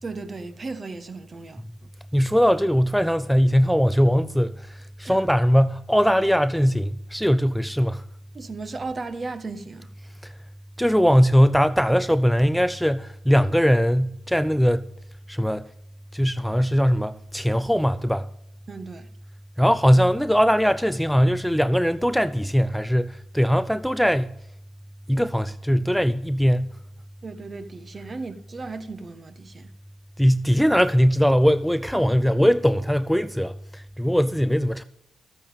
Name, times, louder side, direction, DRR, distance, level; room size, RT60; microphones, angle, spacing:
voice 1, 0.0-1.9 5.1-5.2 8.3-9.9 18.7-19.1 27.2-29.7, right 3 dB, 45° right, 1.4 m, -36 dB
voice 2, 2.1-8.0 10.2-10.3 10.8-14.9 15.3-15.7 16.1-18.3 19.6-24.3 25.1-26.8 30.2-34.8, equal, ahead, 0.5 m, -20 dB
12.5 x 8.4 x 5.2 m
supercardioid pair, 50°, 0 cm